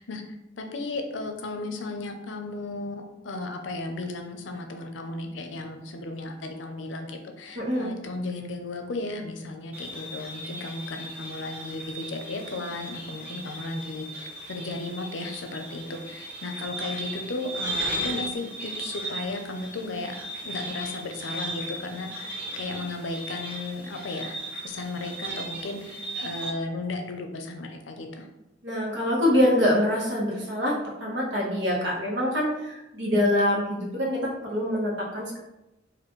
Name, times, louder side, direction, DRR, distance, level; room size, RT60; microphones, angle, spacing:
voice 1, 0.0-20.2 20.4-28.3, left 2 dB, 80° left, 4 dB, 0.6 m, -35 dB
voice 2, 7.5-7.9 28.6-35.4, left 1 dB, 75° right, -3 dB, 1.2 m, -25 dB
sound 1, 9.7-26.5, right 1 dB, 10° right, 1.0 m, -36 dB
4.2 x 2.6 x 3.1 m, 0.93 s
head